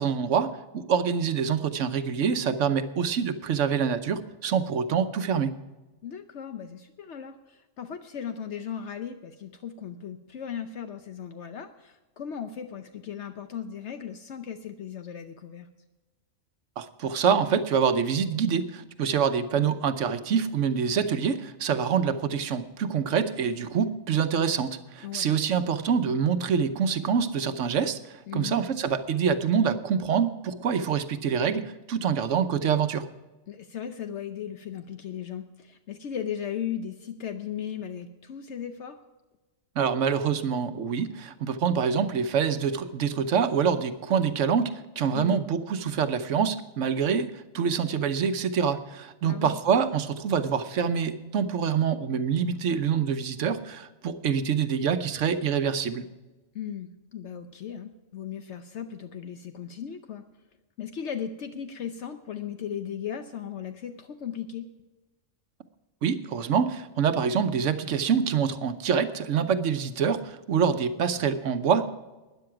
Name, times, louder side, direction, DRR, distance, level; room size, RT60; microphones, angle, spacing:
voice 1, 0.0-5.5 16.8-33.1 39.8-56.0 66.0-71.9, right 7 dB, 85° right, 10 dB, 1.2 m, -26 dB
voice 2, 6.0-15.7 25.0-25.3 28.3-28.6 33.5-39.0 45.1-45.4 49.2-49.6 56.5-60.2 60.8-64.7, left 8 dB, 70° left, 8 dB, 1.0 m, -37 dB
12.5 x 10.0 x 5.9 m, 1.1 s
omnidirectional pair, 1.3 m